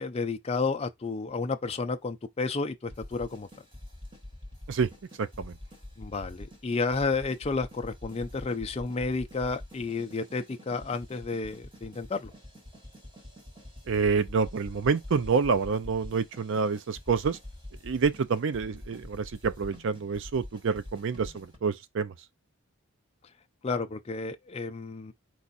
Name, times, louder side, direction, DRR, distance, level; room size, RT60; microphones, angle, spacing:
voice 1, 0.0-3.5 6.0-12.3 23.6-25.1, left 4 dB, 30° left, 0.5 m, -31 dB
sound 1, 2.9-21.6, left 1 dB, 25° right, 1.4 m, -46 dB
voice 2, 5.2-5.5 13.9-17.4 17.8-22.1, right 5 dB, 60° right, 0.5 m, -27 dB
4.7 x 2.5 x 4.1 m
head